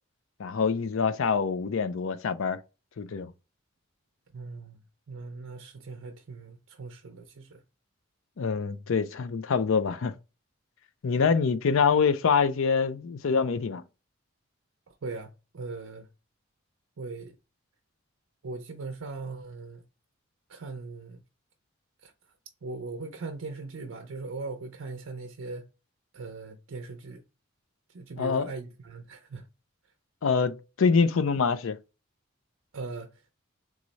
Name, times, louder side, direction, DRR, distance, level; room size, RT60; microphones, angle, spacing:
voice 1, 0.4-2.6 3.0-3.3 8.4-10.1 11.0-13.8 28.2-28.5 30.2-31.8, left 5 dB, 75° left, 0.5 m, -25 dB
voice 2, 4.3-4.8 5.1-7.6 14.9-16.1 17.0-17.4 18.4-19.8 20.5-21.2 22.0-22.1 22.6-25.6 26.1-27.2 27.9-29.5 32.7-33.2, right 3 dB, 80° right, 0.6 m, -39 dB
3.6 x 3.1 x 3.9 m
head